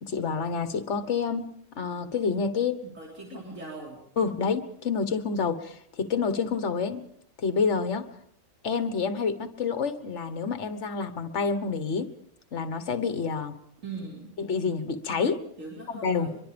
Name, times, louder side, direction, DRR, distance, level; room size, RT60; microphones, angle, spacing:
voice 1, 0.0-1.5 1.8-2.8 4.2-7.0 7.4-8.0 8.6-12.1 12.5-13.5 14.4-15.4 15.9-16.3, left 5 dB, 60° left, 10 dB, 1.6 m, -28 dB
voice 2, 2.9-4.0 13.8-14.3 15.6-16.4, right 3 dB, 70° right, -3 dB, 4.3 m, -40 dB
24.5 x 23.0 x 5.2 m, 0.72 s
omnidirectional pair, 1.4 m